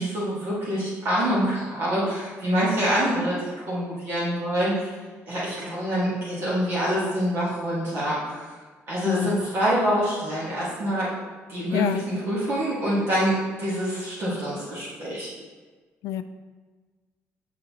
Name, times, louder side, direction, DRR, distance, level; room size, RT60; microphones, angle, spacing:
voice 1, 0.0-4.9 5.3-8.5 8.9-11.1 11.5-15.3, equal, 45° right, -8 dB, 1.7 m, -26 dB
voice 2, 9.0-9.4 11.7-12.1 16.0-16.2, left 12 dB, 85° left, 10 dB, 0.4 m, -27 dB
6.6 x 6.4 x 2.9 m, 1.4 s
cardioid pair, 155°, 6 cm